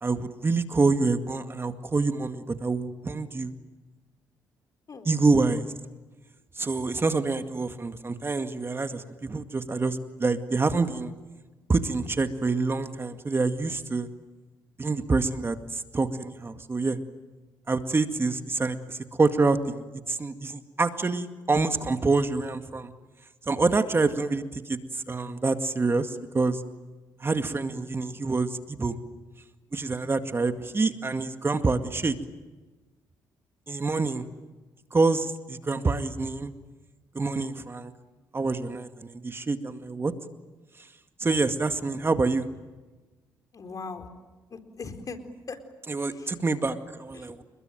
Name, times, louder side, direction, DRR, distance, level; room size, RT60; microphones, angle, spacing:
voice 1, 0.0-3.5 5.0-5.7 6.6-11.1 11.7-14.1 14.8-17.0 17.7-22.9 23.5-26.6 27.2-28.9 29.7-32.1 33.7-34.2 34.9-36.5 37.1-37.9 38.3-40.1 41.2-42.5 45.9-47.4, right 3 dB, 30° right, 8 dB, 2.1 m, -26 dB
voice 2, 43.5-44.1 44.5-45.2 45.5-45.6 46.0-46.4 47.1-47.3, left 4 dB, 45° left, 6 dB, 4.2 m, -40 dB
30.0 x 21.5 x 9.2 m, 1.2 s
supercardioid pair, 70°, 8 cm